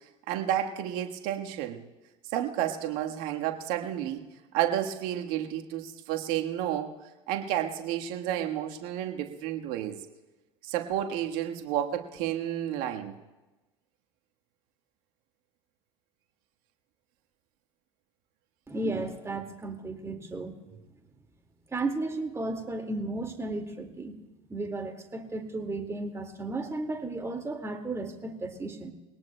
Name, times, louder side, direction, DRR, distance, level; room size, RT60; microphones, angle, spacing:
voice 1, 0.3-1.8 2.3-4.2 4.5-6.9 7.3-10.0 10.6-13.1, right 11 dB, 60° right, 4 dB, 1.4 m, -31 dB
voice 2, 18.7-20.5 21.7-24.1 24.5-28.9, right 2 dB, 15° right, 4 dB, 2.0 m, -34 dB
23.0 x 18.0 x 2.2 m, 1.1 s
hypercardioid pair, 70°, 17 cm